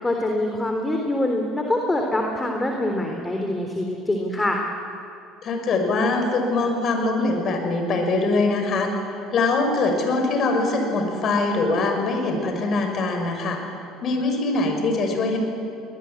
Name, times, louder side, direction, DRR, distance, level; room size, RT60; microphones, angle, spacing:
voice 1, 0.0-4.6, left 1 dB, 15° left, 2 dB, 3.5 m, -24 dB
voice 2, 5.4-8.9 9.3-13.6 14.0-15.4, left 3 dB, 50° left, 4 dB, 6.0 m, -23 dB
23.0 x 19.5 x 9.7 m, 2.6 s
hypercardioid pair, 65°, 0 cm